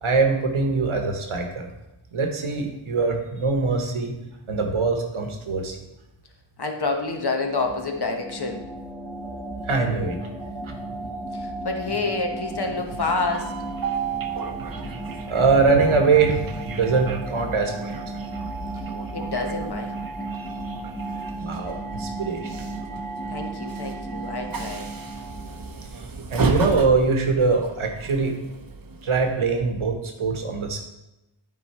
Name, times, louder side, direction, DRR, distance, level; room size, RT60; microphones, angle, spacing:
voice 1, 0.0-1.7 2.1-4.2 4.5-5.8 9.7-10.2 10.6-10.8 14.8-18.2 21.4-22.6 26.3-28.3 29.0-30.8, right 4 dB, 80° right, 4 dB, 1.3 m, -23 dB
voice 2, 6.6-8.6 11.3-13.5 19.1-20.1 23.3-24.9, left 3 dB, 50° left, 3 dB, 1.2 m, -28 dB
sound 1, 7.0-25.9, right 2 dB, 5° left, 0.6 m, -35 dB
Train, 12.3-29.6, right 5 dB, 45° right, 0.8 m, -35 dB
10.0 x 4.2 x 4.3 m, 0.96 s
wide cardioid pair, 65°, 48 cm